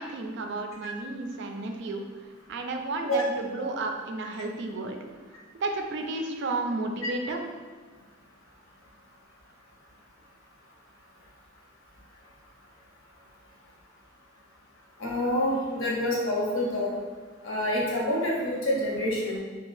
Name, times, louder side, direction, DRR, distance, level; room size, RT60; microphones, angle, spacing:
voice 1, 0.0-2.0 2.5-5.0 5.6-7.4, right 2 dB, 60° right, 4 dB, 0.3 m, -32 dB
voice 2, 15.0-16.9 17.4-19.4, left 1 dB, 80° left, -3 dB, 0.8 m, -27 dB
2.6 x 2.3 x 3.2 m, 1.4 s
head